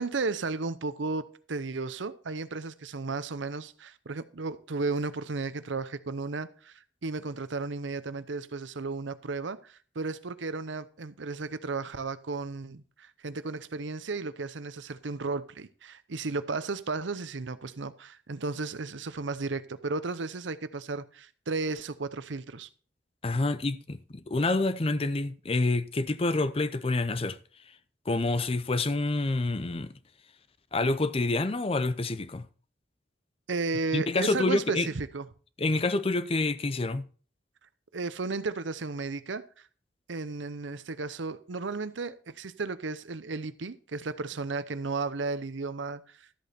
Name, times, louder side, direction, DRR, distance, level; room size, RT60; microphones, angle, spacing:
voice 1, 0.0-22.7 33.5-35.3 37.9-39.4 40.1-46.2, right 3 dB, 80° right, 0.8 m, -34 dB
voice 2, 23.2-27.4 28.1-29.9 30.7-32.5 33.9-34.9 35.6-37.1, left 2 dB, 30° left, 0.5 m, -27 dB
13.0 x 8.3 x 4.3 m
head